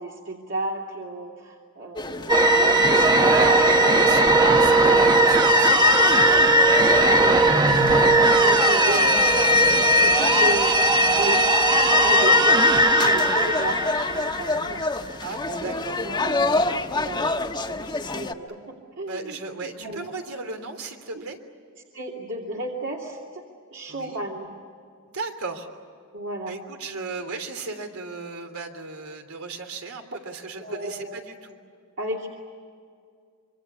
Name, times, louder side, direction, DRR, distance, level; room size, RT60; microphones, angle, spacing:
voice 1, 0.0-4.3 4.8-5.2 5.9-6.0 7.1-7.4 8.0-10.8 11.2-15.1 15.6-16.4 16.6-19.4 19.8-20.1 21.1-21.2 21.9-23.4 23.7-24.5 26.1-26.5 30.6-31.2 32.0-32.3, right 2 dB, 60° right, -3 dB, 2.8 m, -33 dB
sound 1, 2.0-18.3, left 2 dB, 20° left, 1.2 m, -29 dB
sound 2, 2.3-14.8, right 1 dB, 20° right, 1.1 m, -18 dB
voice 2, 3.2-6.6 7.8-8.1 15.2-16.0 19.1-21.4 23.9-24.2 25.1-25.7 26.5-31.6, right 3 dB, 85° right, 5 dB, 3.2 m, -35 dB
26.0 x 24.0 x 8.5 m, 2.3 s
head